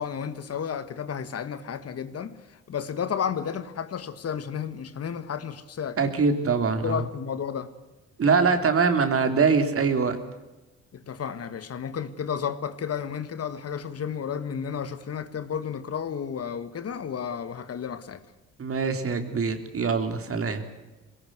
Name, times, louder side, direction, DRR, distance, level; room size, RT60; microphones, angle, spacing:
voice 1, 0.0-6.1 6.8-7.7 10.9-18.2, left 7 dB, 55° left, 1.7 m, -32 dB
voice 2, 6.0-7.0 8.2-10.2 18.6-20.6, right 5 dB, 50° right, 3.4 m, -23 dB
21.5 x 18.5 x 8.0 m
cardioid pair, 90°, 30 cm